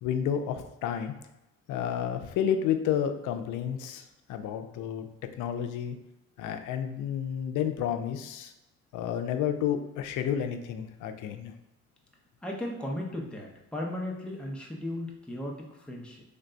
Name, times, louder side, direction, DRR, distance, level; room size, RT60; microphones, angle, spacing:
voice 1, 0.0-1.1 1.7-5.1 5.4-6.0 6.4-8.5 8.9-11.5, left 9 dB, 80° left, 8 dB, 0.5 m, -31 dB
voice 2, 12.4-16.2, left 1 dB, 5° left, -1 dB, 0.7 m, -36 dB
3.3 x 2.2 x 3.8 m, 0.93 s
cardioid pair, 90°, 30 cm